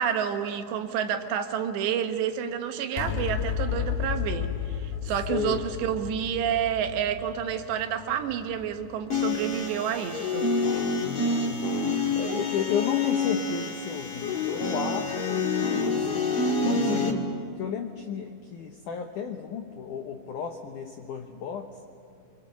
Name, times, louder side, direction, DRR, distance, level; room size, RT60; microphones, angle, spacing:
voice 1, 0.0-10.5, right 9 dB, 75° right, 7 dB, 3.3 m, -29 dB
sound 1, 3.0-9.7, left 9 dB, 65° left, 3.0 m, -33 dB
voice 2, 5.3-5.6 11.0-11.7 12.2-17.3 17.6-21.7, left 8 dB, 85° left, 5 dB, 1.8 m, -33 dB
sound 2, 9.1-17.1, left 3 dB, 45° left, 1.7 m, -27 dB
26.5 x 25.0 x 7.4 m, 2.3 s
omnidirectional pair, 5.2 m